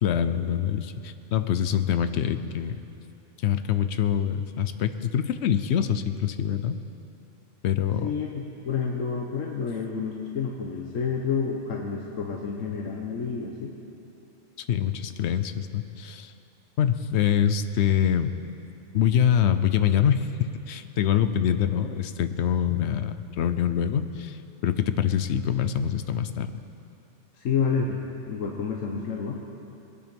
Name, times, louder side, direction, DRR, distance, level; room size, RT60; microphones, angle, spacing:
voice 1, 0.0-2.8 3.4-6.8 7.6-8.1 14.7-16.3 16.8-18.3 18.9-26.5, left 9 dB, 65° left, 11 dB, 0.8 m, -25 dB
voice 2, 8.0-13.7 27.3-29.4, left 6 dB, 80° left, 0 dB, 1.3 m, -29 dB
20.5 x 8.8 x 5.3 m, 2.8 s
omnidirectional pair, 1.3 m